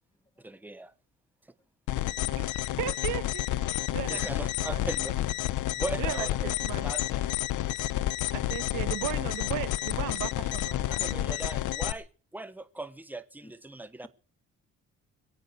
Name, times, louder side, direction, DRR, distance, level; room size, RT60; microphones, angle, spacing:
voice 1, 0.4-0.9 2.0-2.1 4.1-5.5 5.7-6.5 6.8-7.3 10.9-14.1, right 2 dB, 5° right, 1.2 m, -39 dB
sound 1, 1.9-11.9, left 14 dB, 85° left, 0.9 m, -30 dB
voice 2, 2.8-4.2 4.6-4.9 6.0-6.9 8.3-11.4, right 15 dB, 85° right, 1.0 m, -36 dB
voice 3, 7.6-8.3 13.4-13.5, left 2 dB, 15° left, 1.9 m, -58 dB
22.5 x 9.0 x 6.7 m
cardioid pair, 90°, 30 cm